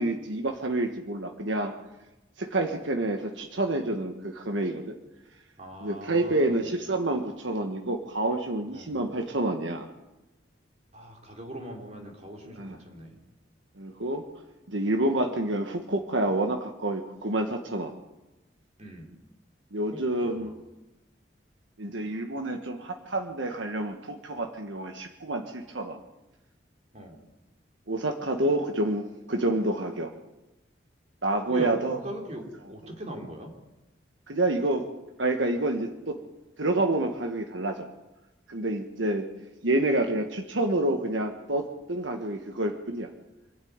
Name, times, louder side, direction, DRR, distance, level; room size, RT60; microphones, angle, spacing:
voice 1, 0.0-1.7 2.4-5.0 5.8-9.9 12.6-12.8 13.8-14.3 14.7-17.9 19.7-20.5 21.8-26.0 27.9-30.1 31.2-32.0 34.3-34.9 35.2-36.2 36.6-37.9 38.5-39.3 39.6-43.1, right 2 dB, 85° right, 4 dB, 1.6 m, -28 dB
voice 2, 5.6-6.6 8.7-9.0 10.9-13.2 18.8-19.1 19.9-20.0 20.4-20.5 26.9-27.2 28.4-28.5 31.5-33.5, right 1 dB, 35° right, 1 dB, 3.9 m, -40 dB
25.5 x 12.5 x 9.6 m, 1.0 s
head